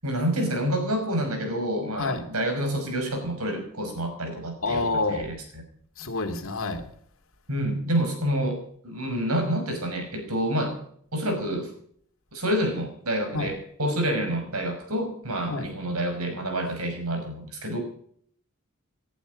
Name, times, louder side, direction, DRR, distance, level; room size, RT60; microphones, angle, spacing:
voice 1, 0.0-5.6 7.5-10.7 11.1-11.7 12.3-17.8, right 1 dB, 80° right, 6 dB, 5.8 m, -28 dB
voice 2, 4.6-5.3 6.0-6.9 13.3-13.5 15.5-15.7, left 3 dB, 65° left, 7 dB, 2.6 m, -28 dB
19.5 x 11.5 x 5.2 m, 0.62 s
head